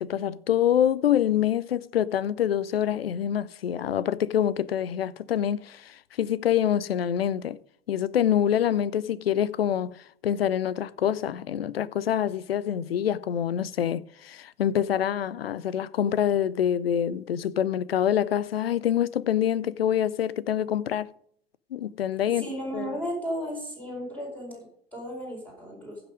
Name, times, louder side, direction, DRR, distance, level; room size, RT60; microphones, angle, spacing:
voice 1, 0.0-7.6 7.9-10.0 10.2-21.1 21.7-22.4 22.7-22.9, left 10 dB, 75° left, 0.6 m, -26 dB
voice 2, 22.2-26.0, equal, 5° left, 4.7 m, -35 dB
15.0 x 6.0 x 5.0 m
figure-of-eight pair, 85°, 30 cm